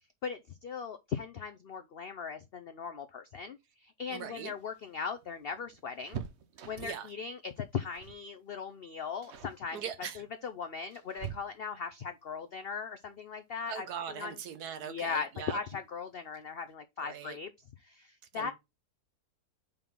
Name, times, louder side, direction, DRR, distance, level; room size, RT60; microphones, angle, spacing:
voice 1, 0.2-6.2 6.7-9.8 10.2-14.4 14.8-17.5 17.8-18.5, left 6 dB, 75° left, 0.5 m, -39 dB
voice 2, 4.1-4.5 6.8-7.1 9.7-10.2 13.7-15.6 17.0-17.4 18.3-18.5, right 8 dB, 75° right, 1.4 m, -41 dB
sound 1, 4.5-7.1 7.9-8.3 8.5-8.8 9.2-9.6 10.4-11.9 13.6-13.7 14.1-14.2 15.4-15.8 16.1-16.2 16.5-16.7, right 9 dB, 55° right, 0.8 m, -45 dB
5.3 x 3.6 x 5.6 m
omnidirectional pair, 1.7 m